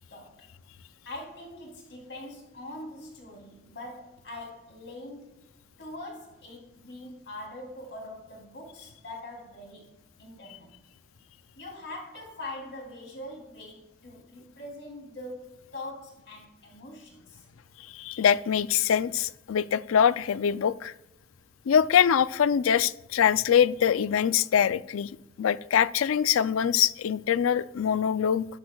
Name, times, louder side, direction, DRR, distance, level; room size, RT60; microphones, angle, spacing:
voice 1, 0.1-0.5 1.0-5.5 5.8-10.8 11.6-17.4, left 1 dB, 60° left, 3.0 m, -43 dB
voice 2, 17.9-20.9 21.7-28.5, left 8 dB, 85° left, 0.4 m, -24 dB
13.0 x 12.0 x 2.3 m
head